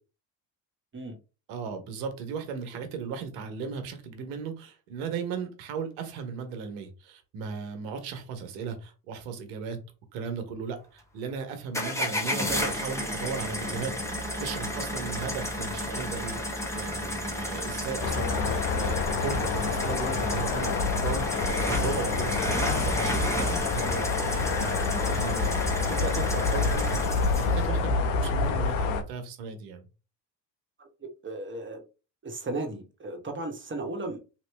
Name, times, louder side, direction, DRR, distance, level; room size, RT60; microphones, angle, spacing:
voice 1, 1.5-9.8 10.1-29.8, right 6 dB, 80° right, 1.1 m, -36 dB
sound 1, 11.7-27.7, equal, 5° left, 0.9 m, -32 dB
sound 2, 18.0-29.0, left 4 dB, 70° left, 0.8 m, -28 dB
voice 2, 30.8-31.8 32.2-34.2, right 2 dB, 25° right, 1.2 m, -35 dB
3.0 x 2.9 x 3.3 m
hypercardioid pair, 70°, 49 cm